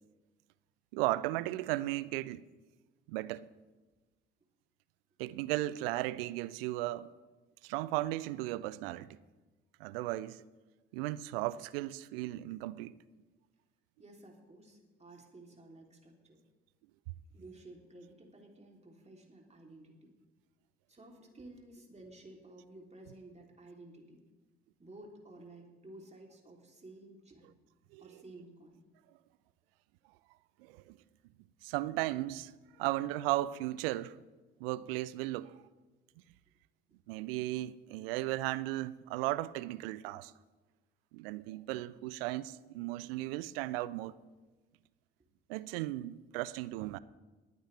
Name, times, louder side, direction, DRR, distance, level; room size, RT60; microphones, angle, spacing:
voice 1, 0.9-2.4 3.1-3.5 5.2-7.1 7.6-9.2 9.8-10.4 10.9-13.0 27.9-28.2 30.6-31.0 31.6-32.5 32.8-34.2 34.6-35.6 37.1-40.3 41.1-44.1 45.5-47.0, right 17 dB, 75° right, 0.5 m, -36 dB
voice 2, 14.0-16.4 17.3-20.1 20.9-24.2 24.8-27.5 28.0-28.8, right 2 dB, 20° right, 3.2 m, -53 dB
21.0 x 8.9 x 3.4 m
hypercardioid pair, 50°, 29 cm